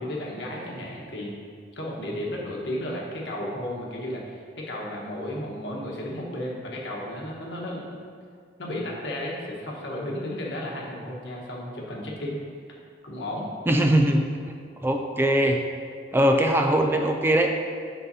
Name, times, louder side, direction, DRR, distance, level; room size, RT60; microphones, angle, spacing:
voice 1, 0.0-1.4 1.8-8.0 8.6-12.4 13.0-13.5, left 1 dB, 75° left, -3 dB, 1.2 m, -33 dB
voice 2, 13.7-14.3 14.8-15.6 16.1-17.5, right 1 dB, 10° right, 3 dB, 0.4 m, -21 dB
7.8 x 5.6 x 2.7 m, 2.1 s
head